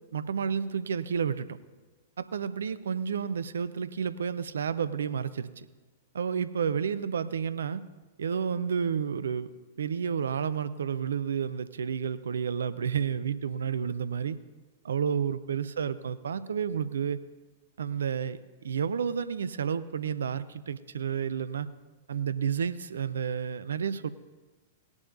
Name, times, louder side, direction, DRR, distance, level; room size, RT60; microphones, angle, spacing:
voice 1, 0.1-1.6 2.2-5.7 6.1-7.8 8.2-9.5 9.8-14.4 14.9-17.2 17.8-21.7 22.1-24.1, right 7 dB, 75° right, 15 dB, 0.5 m, -31 dB
18.5 x 10.5 x 2.7 m, 1.3 s
figure-of-eight pair, 105°, 0 cm